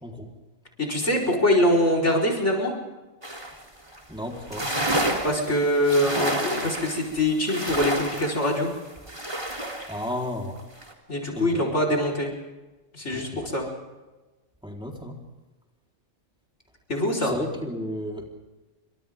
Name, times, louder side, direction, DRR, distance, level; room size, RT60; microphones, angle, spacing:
voice 1, 0.8-2.7 5.2-8.7 11.1-12.3 12.9-13.7 16.9-17.3, left 1 dB, 65° left, 1 dB, 4.9 m, -23 dB
sound 1, 3.2-3.6 3.9-4.0 4.3-10.1 10.6-10.9, right 1 dB, 25° right, 3.6 m, -30 dB
voice 2, 4.1-4.7 9.9-10.5 11.3-11.7 13.1-13.4 14.6-15.2 17.2-18.3, left 1 dB, 5° right, 0 dB, 4.0 m, -33 dB
29.0 x 25.5 x 3.7 m, 1.2 s
omnidirectional pair, 1.3 m